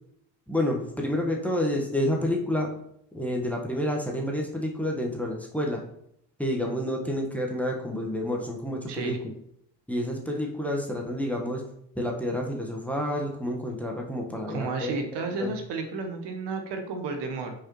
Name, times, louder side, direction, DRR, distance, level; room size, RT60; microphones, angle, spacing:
voice 1, 0.5-2.7 3.1-5.8 6.4-9.2 9.9-11.6 11.9-15.5, left 1 dB, 5° left, 1 dB, 1.2 m, -29 dB
voice 2, 8.9-9.2 14.5-17.5, right 3 dB, 55° right, 5 dB, 1.2 m, -32 dB
6.2 x 5.0 x 3.0 m, 0.72 s
figure-of-eight pair, 50°, 50 cm